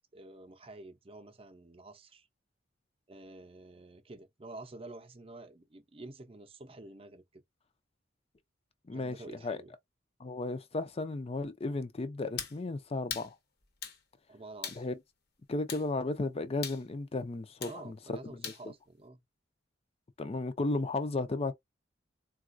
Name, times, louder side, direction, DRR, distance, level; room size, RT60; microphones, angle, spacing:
voice 1, 0.1-2.3 3.1-7.4 8.9-9.7 14.3-14.9 17.7-19.2, right 2 dB, 30° right, 0.6 m, -49 dB
voice 2, 10.2-13.4 14.8-15.0 15.5-18.0 18.2-18.7 20.2-21.5, left 2 dB, 30° left, 0.5 m, -34 dB
sound 1, 12.4-12.6 13.1-13.3 13.8-14.0 14.6-14.8 15.7-15.9 16.6-16.8 17.6-17.8 18.4-18.6, left 7 dB, 60° left, 0.9 m, -39 dB
3.9 x 2.4 x 2.5 m
head